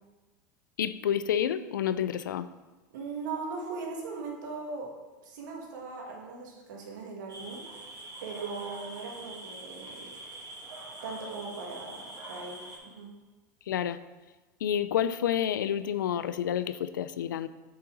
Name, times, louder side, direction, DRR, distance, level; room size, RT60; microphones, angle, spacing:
voice 1, 0.8-2.5 13.7-14.0 14.6-17.5, left 9 dB, 85° left, 13 dB, 0.4 m, -29 dB
voice 2, 2.9-4.9 5.2-7.6 8.2-10.1 11.0-13.1, right 4 dB, 75° right, 0 dB, 1.8 m, -39 dB
sound 1, 7.3-12.8, right 2 dB, 40° right, 2.2 m, -44 dB
6.9 x 5.7 x 3.9 m, 1.2 s
hypercardioid pair, 95°, 10 cm